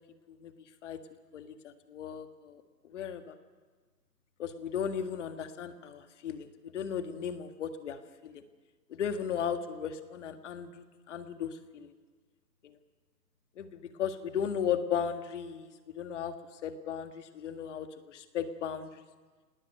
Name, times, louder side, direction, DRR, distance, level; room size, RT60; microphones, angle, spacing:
voice 1, 1.3-3.3 4.4-8.4 8.9-11.9 12.6-12.7 13.6-16.3 16.6-19.0, left 8 dB, 45° left, 8 dB, 1.8 m, -36 dB
26.5 x 19.5 x 6.7 m, 1.4 s
hypercardioid pair, 165°, 50 cm